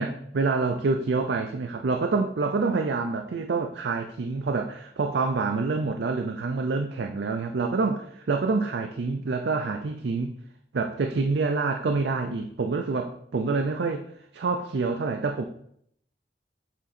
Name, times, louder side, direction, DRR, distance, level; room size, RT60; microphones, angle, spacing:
voice 1, 0.0-10.3 10.7-14.1 14.3-15.4, right 4 dB, 75° right, 5 dB, 0.5 m, -27 dB
7.5 x 3.8 x 4.2 m, 0.69 s
head